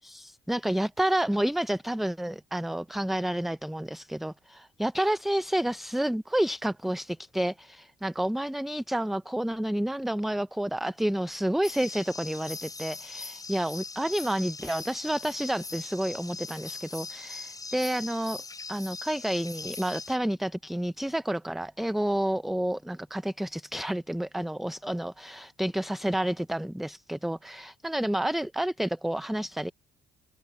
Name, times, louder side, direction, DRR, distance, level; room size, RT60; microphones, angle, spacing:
voice 1, 0.0-18.4 18.7-29.7, right 1 dB, ahead, 0.4 m, -30 dB
sound 1, 11.6-20.2, left 3 dB, 20° left, 7.1 m, -41 dB
cardioid pair, 110°, 17 cm